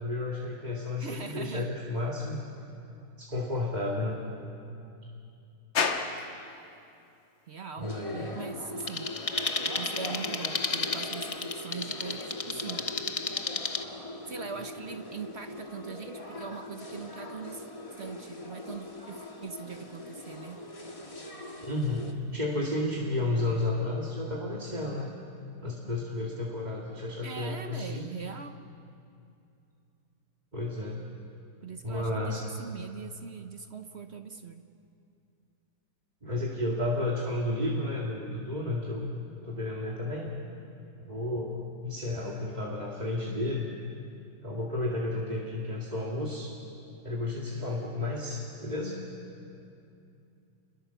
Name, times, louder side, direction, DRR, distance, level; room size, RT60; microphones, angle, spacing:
voice 1, 0.0-2.4 3.2-4.2 7.8-8.4 21.6-25.1 25.6-28.2 30.5-31.0 31.8-32.4 36.2-39.1 39.4-40.3 41.1-43.7 44.4-46.5 47.0-49.0, left 2 dB, 25° right, -3 dB, 2.1 m, -32 dB
voice 2, 1.0-1.7 7.5-9.1 9.6-12.9 14.3-17.7 18.0-20.7 27.2-28.5 31.6-34.6, right 6 dB, 50° right, 8 dB, 0.8 m, -41 dB
sound 1, 5.7-23.2, left 5 dB, 90° left, 2.2 m, -42 dB
sound 2, 7.8-22.1, left 1 dB, 20° left, 1.6 m, -41 dB
sound 3, 8.9-13.8, left 4 dB, 50° left, 0.4 m, -33 dB
29.0 x 22.0 x 6.9 m, 2.6 s
omnidirectional pair, 2.0 m